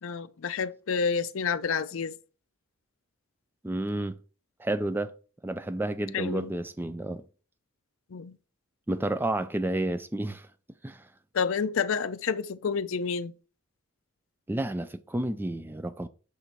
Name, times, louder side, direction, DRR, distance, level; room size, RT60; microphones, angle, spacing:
voice 1, 0.0-2.1 6.1-6.5 8.1-8.4 11.3-13.3, left 6 dB, 65° left, 0.5 m, -29 dB
voice 2, 3.6-4.2 4.6-5.1 5.4-7.2 8.9-10.5 10.8-11.1 14.5-16.1, right 1 dB, 10° right, 0.3 m, -30 dB
6.7 x 4.2 x 4.5 m
head